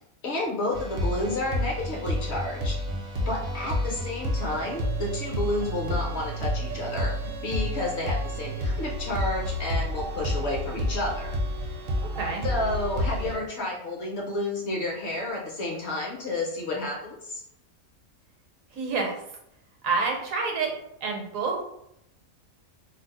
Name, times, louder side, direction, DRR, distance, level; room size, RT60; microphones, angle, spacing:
voice 1, 0.2-2.8 3.3-7.1 7.4-11.3 12.4-17.4, left 2 dB, 60° left, -2 dB, 0.8 m, -31 dB
sound 1, 0.7-13.4, equal, 55° right, 0.6 m, -30 dB
voice 2, 12.1-12.5 18.7-19.2 19.8-20.7 21.0-21.7, right 4 dB, 70° right, 0 dB, 1.0 m, -28 dB
2.6 x 2.0 x 4.0 m, 0.77 s
omnidirectional pair, 1.5 m